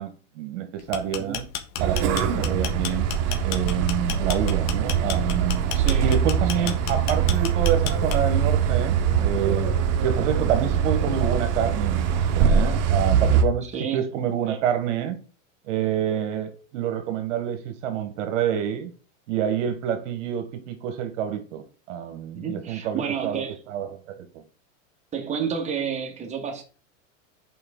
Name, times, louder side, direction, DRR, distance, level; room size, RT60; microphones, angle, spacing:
voice 1, 0.0-1.5 1.8-3.1 3.4-5.6 6.0-9.7 10.0-15.2 15.6-18.9 19.3-24.4, right 9 dB, 70° right, 1.4 m, -27 dB
sound 1, 0.8-8.4, left 10 dB, 50° left, 1.0 m, -32 dB
sound 2, 1.8-13.4, right 7 dB, 40° right, 1.2 m, -23 dB
voice 2, 5.7-6.1 13.6-14.0 22.3-23.6 25.1-26.6, right 7 dB, 20° right, 1.6 m, -30 dB
7.8 x 5.0 x 3.8 m
supercardioid pair, 135°, 38 cm